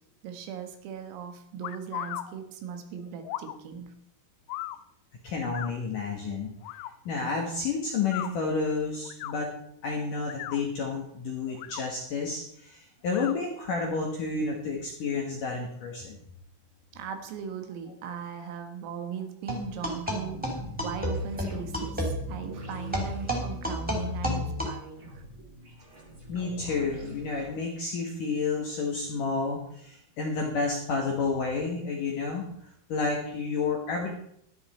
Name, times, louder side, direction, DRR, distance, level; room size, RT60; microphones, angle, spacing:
voice 1, 0.2-3.9 16.9-25.2, right 6 dB, 80° right, 6 dB, 4.1 m, -39 dB
sound 1, 1.6-2.3 3.2-3.6 4.5-4.8 5.5-5.7 6.6-6.9 8.0-8.3 9.0-9.3 10.2-10.6 11.5-11.8 13.1-13.4, left 15 dB, 85° left, 2.6 m, -37 dB
voice 2, 5.2-6.5 7.1-9.5 9.8-16.2 26.3-32.5 32.9-34.1, left 4 dB, 65° left, 0 dB, 2.1 m, -30 dB
sound 2, 19.5-24.7, equal, ahead, 2.3 m, -31 dB
sound 3, 20.1-27.5, left 1 dB, 30° right, 2.1 m, -44 dB
13.0 x 11.5 x 4.4 m, 0.70 s
omnidirectional pair, 5.9 m